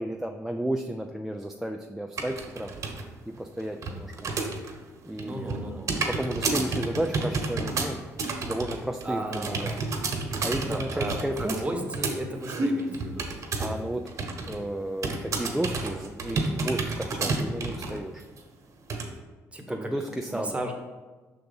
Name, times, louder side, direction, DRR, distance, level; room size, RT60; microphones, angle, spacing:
voice 1, 0.0-2.7 3.3-4.3 5.0-5.8 6.2-8.0 8.5-9.8 10.4-11.6 12.5-12.7 13.6-18.2 19.7-20.6, right 1 dB, 5° right, 4 dB, 0.4 m, -33 dB
sound 1, 2.2-3.0 3.4-4.8 5.1-13.8 14.1-14.6 15.0-18.0 18.4-18.5 18.9-19.1, right 3 dB, 50° right, 1.1 m, -30 dB
voice 2, 5.2-5.9 9.0-9.7 10.6-13.3 19.5-20.7, right 1 dB, 20° right, 3 dB, 1.0 m, -35 dB
5.8 x 3.8 x 5.4 m, 1.3 s
cardioid pair, 90°, 7 cm